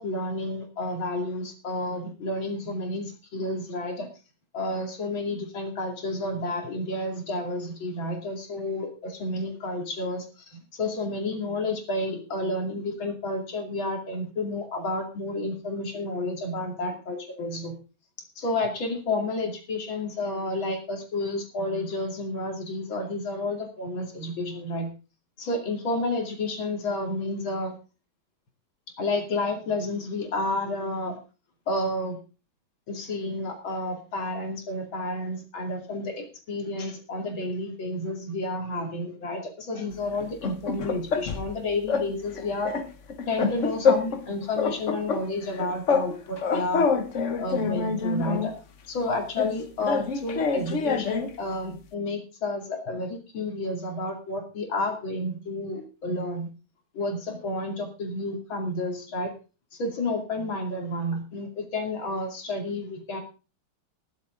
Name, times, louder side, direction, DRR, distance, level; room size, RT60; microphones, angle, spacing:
voice 1, 0.0-4.1 4.5-17.8 18.4-24.9 25.4-27.8 29.0-31.2 31.7-32.2 32.9-42.7 43.3-46.9 47.4-48.6 48.9-56.5 56.9-59.3 59.7-63.2, left 2 dB, 75° left, 3 dB, 3.4 m, -30 dB
sound 1, 40.2-41.5 41.9-42.1 42.4-44.3 44.6-46.1 46.4-48.5 49.4-51.4, left 5 dB, 45° left, 1.1 m, -26 dB
21.0 x 7.8 x 3.8 m, 0.34 s
omnidirectional pair, 2.2 m